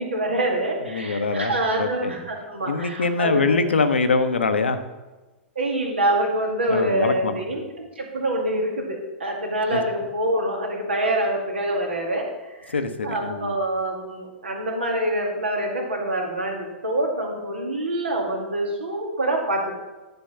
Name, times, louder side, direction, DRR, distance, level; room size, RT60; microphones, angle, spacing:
voice 1, 0.0-3.6 5.6-12.3 12.6-12.8 13.0-19.7, right 1 dB, 75° right, 0 dB, 2.1 m, -25 dB
voice 2, 0.9-2.1 2.7-4.8 6.7-7.4 9.7-9.8 12.7-13.5, left 4 dB, 75° left, 9 dB, 0.8 m, -23 dB
10.5 x 4.5 x 5.6 m, 1.2 s
figure-of-eight pair, 100°, 6 cm